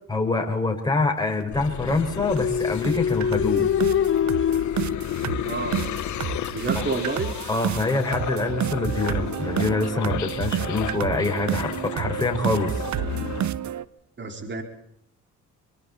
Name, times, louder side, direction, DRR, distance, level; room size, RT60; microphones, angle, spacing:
voice 1, 0.1-3.7 6.8-6.9 7.5-12.7, left 3 dB, 15° left, 2 dB, 5.6 m, -25 dB
sound 1, 1.4-1.5 1.9-2.0 2.4-2.5 2.8-13.8, right 10 dB, 65° right, 1.1 m, -30 dB
sound 2, 1.5-13.5, left 12 dB, 70° left, 1.3 m, -34 dB
sound 3, 2.2-6.0, left 8 dB, 45° left, 0.9 m, -25 dB
voice 2, 5.4-7.3 14.2-14.6, right 3 dB, 40° right, 4 dB, 4.6 m, -30 dB
26.5 x 24.5 x 4.3 m, 0.73 s
cardioid pair, 90°, 30 cm